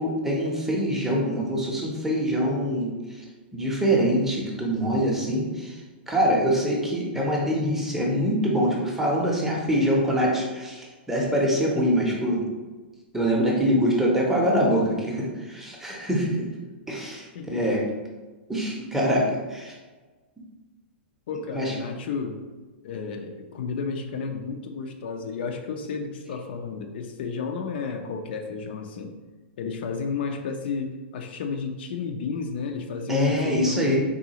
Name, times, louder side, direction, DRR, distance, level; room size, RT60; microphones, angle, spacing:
voice 1, 0.0-2.9 3.5-5.8 6.1-12.4 13.1-16.5 16.9-17.8 18.5-19.8 21.5-21.7 33.1-34.0, equal, 5° right, -3 dB, 0.6 m, -24 dB
voice 2, 21.3-22.4 22.8-29.1 29.6-34.0, left 5 dB, 60° left, 4 dB, 0.4 m, -32 dB
3.7 x 2.4 x 2.8 m, 1.3 s
hypercardioid pair, 140°, 6 cm